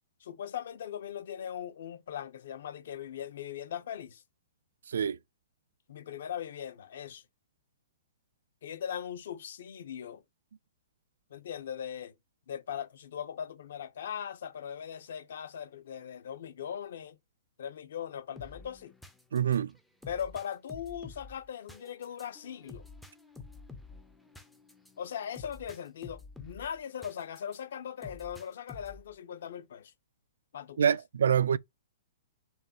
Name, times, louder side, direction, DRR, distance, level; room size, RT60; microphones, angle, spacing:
voice 1, 0.2-4.2 5.9-7.2 8.6-10.2 11.3-12.1 12.5-17.2 17.6-18.9 20.1-22.9 25.0-29.9 30.5-30.9, left 9 dB, 55° left, 0.7 m, -39 dB
voice 2, 4.9-5.2 19.3-19.8 30.8-31.6, right 8 dB, 85° right, 0.3 m, -26 dB
sound 1, 18.4-27.6 28.0-29.1, left 4 dB, ahead, 0.4 m, -50 dB
4.7 x 3.1 x 2.8 m
hypercardioid pair, 175°, 0 cm